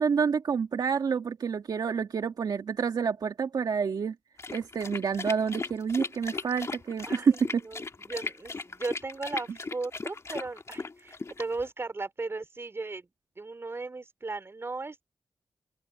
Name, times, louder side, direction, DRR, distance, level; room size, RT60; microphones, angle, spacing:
voice 1, 0.0-4.1 4.5-7.6, right 6 dB, 70° right, 2.2 m, -28 dB
sound 1, 4.4-11.7, left 3 dB, 45° left, 2.3 m, -37 dB
voice 2, 7.0-13.1 13.4-15.0, right 3 dB, 35° right, 4.1 m, -36 dB
open air
cardioid pair, 75°, 7 cm